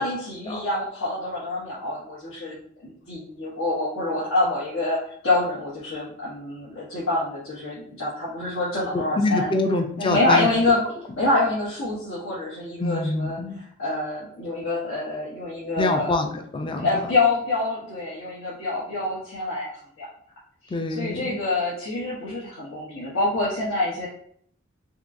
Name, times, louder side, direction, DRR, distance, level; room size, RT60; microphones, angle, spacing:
voice 1, 0.0-2.6 2.8-5.0 5.2-9.5 10.0-10.8 11.2-16.1 16.7-19.7 20.0-20.1 20.6-24.1, left 2 dB, 80° left, -8 dB, 1.0 m, -26 dB
voice 2, 8.9-10.5 12.8-13.6 15.8-16.9 20.7-21.4, left 2 dB, 25° left, 5 dB, 0.3 m, -25 dB
3.8 x 2.8 x 2.5 m, 0.64 s
head